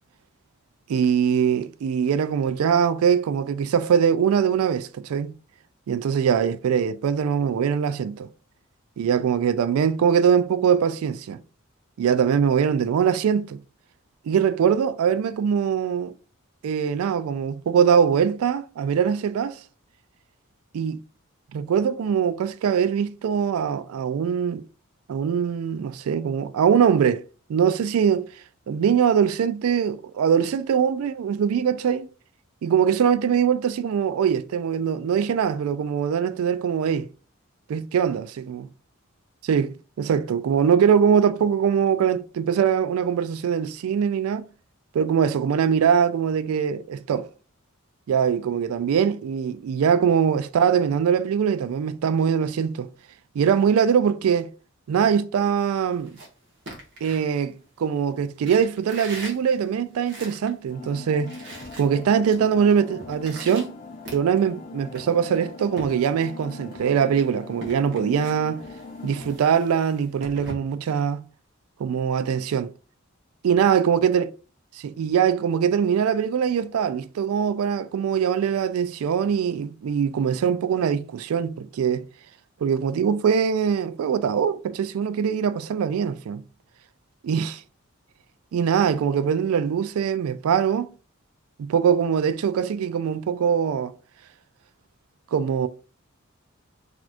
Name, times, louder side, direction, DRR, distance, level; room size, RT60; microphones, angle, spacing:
voice 1, 0.9-5.3 5.9-8.3 9.0-11.4 12.0-13.6 14.3-16.1 16.6-19.6 20.7-21.0 21.5-24.6 25.1-27.2 27.5-28.3 28.7-32.1 32.6-37.1 37.7-38.6 39.5-39.7 40.0-44.4 44.9-47.3 48.1-52.9 53.4-54.5 54.9-56.2 57.0-57.5 57.8-61.3 61.8-63.7 64.1-68.6 69.0-71.2 71.8-72.7 73.4-74.3 74.8-82.0 82.6-86.4 87.2-87.6 88.5-90.9 91.6-93.9 95.3-95.7, right 7 dB, 85° right, 0.3 m, -22 dB
sound 1, 55.9-57.9 58.4-60.6 60.9-61.0 61.2-62.4 62.7-64.6 64.9-66.4 66.7-70.5, right 1 dB, 55° right, 1.3 m, -42 dB
sound 2, 60.7-69.4, left 3 dB, 40° left, 0.3 m, -41 dB
4.0 x 2.9 x 2.5 m
head